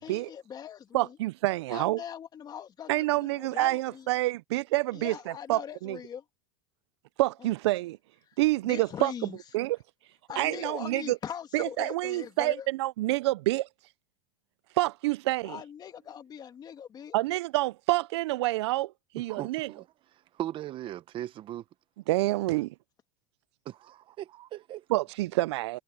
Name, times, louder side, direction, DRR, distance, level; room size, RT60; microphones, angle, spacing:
voice 1, 0.0-1.2 1.7-4.1 4.9-6.2 7.4-7.5 8.6-9.4 10.3-12.7 15.4-17.2, left 8 dB, 30° left, 2.2 m, -41 dB
voice 2, 0.9-2.0 2.9-5.1 5.5-6.0 7.2-8.0 8.4-9.1 9.5-9.8 10.4-11.2 11.5-13.7 14.8-15.6 17.1-18.9 19.1-19.7 22.1-22.7 24.9-25.8, right 18 dB, 85° right, 0.4 m, -27 dB
voice 3, 19.3-19.9 20.3-21.6 23.6-24.8, right 13 dB, 40° right, 1.1 m, -38 dB
supercardioid pair, 125°, 14 cm